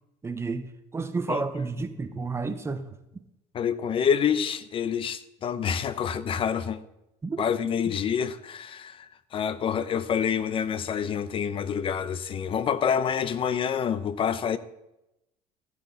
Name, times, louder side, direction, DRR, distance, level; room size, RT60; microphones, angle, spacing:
voice 1, 0.2-2.9 7.2-7.4, right 4 dB, 15° right, 1.0 m, -31 dB
voice 2, 3.5-6.8 7.4-14.6, left 7 dB, 40° left, 0.8 m, -27 dB
14.5 x 9.7 x 4.0 m
cardioid pair, 125°, 15 cm